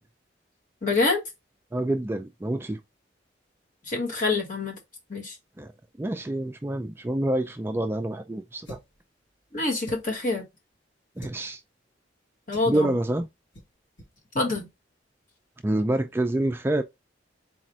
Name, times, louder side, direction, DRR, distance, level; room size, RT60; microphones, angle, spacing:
voice 1, 0.8-1.2 3.8-4.8 5.1-5.3 9.5-10.4 12.5-13.0 14.3-14.7, left 3 dB, 45° left, 1.6 m, -26 dB
voice 2, 1.7-2.8 5.6-5.7 6.0-8.8 11.2-11.6 12.6-13.3 15.6-16.8, right 1 dB, 10° right, 0.3 m, -27 dB
sound 1, 8.6-9.0 9.8-10.2 11.2-11.4 12.5-12.8 13.5-13.7 14.0-14.1 14.5-14.7, equal, 70° left, 1.6 m, -44 dB
4.1 x 2.5 x 4.3 m
head